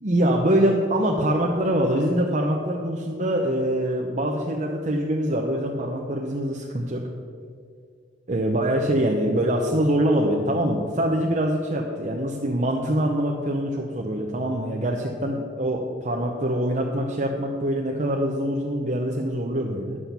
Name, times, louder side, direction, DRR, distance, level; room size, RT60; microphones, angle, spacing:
voice 1, 0.0-7.0 8.3-20.0, right 1 dB, 40° right, -1 dB, 0.9 m, -24 dB
11.0 x 8.1 x 5.8 m, 2.2 s
head